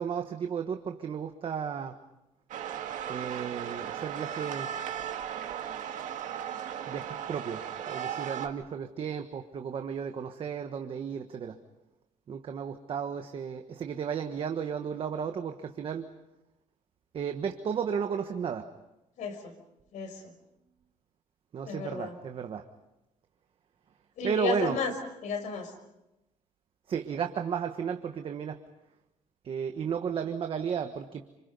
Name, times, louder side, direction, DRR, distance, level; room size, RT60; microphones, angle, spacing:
voice 1, 0.0-2.0 3.1-4.7 6.8-11.6 12.3-16.1 17.1-18.7 21.5-22.7 24.2-24.8 26.9-28.6 29.4-31.4, right 7 dB, 45° right, 5 dB, 1.4 m, -34 dB
sound 1, 2.5-8.5, right 9 dB, 90° right, 2.1 m, -36 dB
voice 2, 19.2-19.5 19.9-20.3 21.6-22.2 24.2-24.9 25.2-25.7, left 6 dB, 80° left, 5 dB, 5.7 m, -33 dB
29.0 x 27.5 x 5.4 m, 0.93 s
cardioid pair, 160°, 13 cm